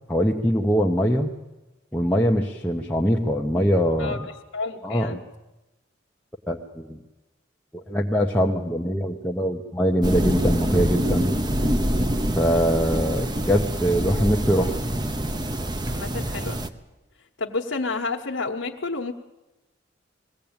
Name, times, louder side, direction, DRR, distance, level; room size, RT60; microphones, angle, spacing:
voice 1, 0.1-1.3 1.9-4.2 4.8-5.2 6.5-7.0 7.7-11.3 12.4-14.8, equal, 10° left, -2 dB, 0.9 m, -22 dB
voice 2, 4.5-5.2 15.9-16.6 17.4-19.1, left 3 dB, 75° left, -1 dB, 1.2 m, -30 dB
sound 1, 10.0-16.7, right 1 dB, 20° right, 0.8 m, -25 dB
21.0 x 16.5 x 8.8 m, 1.0 s
head